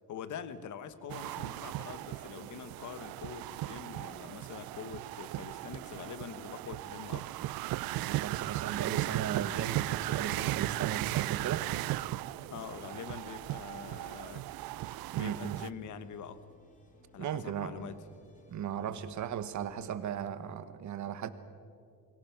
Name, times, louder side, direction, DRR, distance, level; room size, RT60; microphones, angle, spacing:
voice 1, 0.1-7.3 12.5-14.4 15.1-16.4 17.1-18.0, left 8 dB, 45° left, 12 dB, 1.3 m, -45 dB
sound 1, 0.9-19.9, left 2 dB, 20° left, 2.6 m, -61 dB
sound 2, 1.1-15.7, right 17 dB, 65° right, 0.5 m, -36 dB
voice 2, 8.0-11.7 15.1-15.6 17.2-17.9 18.5-21.3, right 9 dB, 45° right, 12 dB, 1.2 m, -37 dB
28.5 x 23.5 x 5.9 m, 2.4 s
cardioid pair, 175°, 40 cm